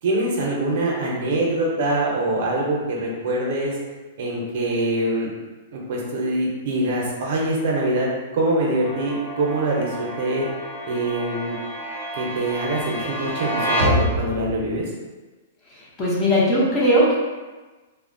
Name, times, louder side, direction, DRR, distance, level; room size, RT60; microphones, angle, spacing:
voice 1, 0.0-3.8 4.2-5.3 5.7-8.1 8.3-10.5 10.9-11.5 12.1-14.8, right 1 dB, 55° right, -3 dB, 0.6 m, -24 dB
sound 1, 8.8-14.7, equal, 75° left, 1.0 m, -28 dB
voice 2, 15.7-17.2, equal, 20° left, -6 dB, 0.6 m, -19 dB
2.6 x 2.1 x 2.5 m, 1.2 s
hypercardioid pair, 160°, 0 cm